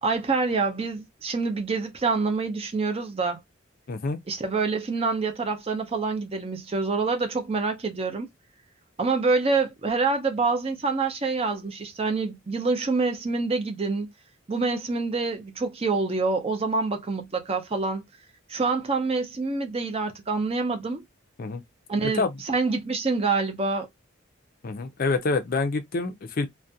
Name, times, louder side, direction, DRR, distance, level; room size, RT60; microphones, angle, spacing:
voice 1, 0.0-3.4 4.3-8.3 9.0-14.1 14.5-18.0 18.5-21.0 21.9-23.9, right 4 dB, 30° right, 0.4 m, -26 dB
voice 2, 3.9-4.2 21.4-21.6 22.0-22.3 24.6-26.5, left 3 dB, 45° left, 0.4 m, -27 dB
2.4 x 2.1 x 2.6 m
head